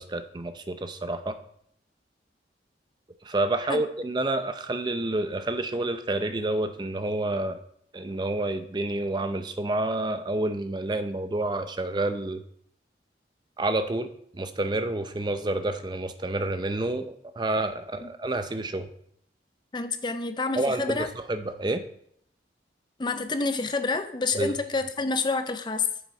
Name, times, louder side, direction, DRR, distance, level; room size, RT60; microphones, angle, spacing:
voice 1, 0.0-1.4 3.2-7.6 7.9-12.4 13.6-14.1 14.3-18.9 20.6-21.8 24.4-24.5, right 2 dB, 25° right, 9 dB, 0.5 m, -29 dB
voice 2, 19.7-21.1 23.0-25.9, left 3 dB, 25° left, 9 dB, 0.5 m, -28 dB
7.3 x 7.0 x 4.7 m, 0.69 s
head